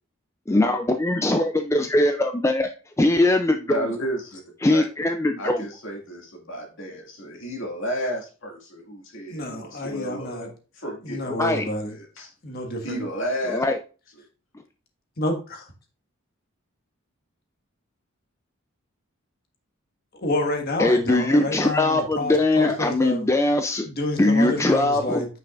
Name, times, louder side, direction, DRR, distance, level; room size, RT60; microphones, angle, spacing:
voice 1, 0.5-2.7 3.0-3.9 4.6-5.6 11.4-11.7 13.5-13.8 20.8-23.9 24.2-25.2, left 2 dB, 15° left, 6 dB, 0.4 m, -21 dB
voice 2, 3.7-4.4 4.7-4.8 5.4-10.5 10.7-11.3 11.9-12.3 12.8-13.6, equal, 65° left, 0 dB, 2.2 m, -32 dB
voice 3, 9.3-10.5 11.0-11.9 12.4-13.0 15.2-15.7 20.2-23.2 23.8-25.3, left 1 dB, 50° left, 2 dB, 1.6 m, -29 dB
8.9 x 5.7 x 2.5 m, 0.34 s
head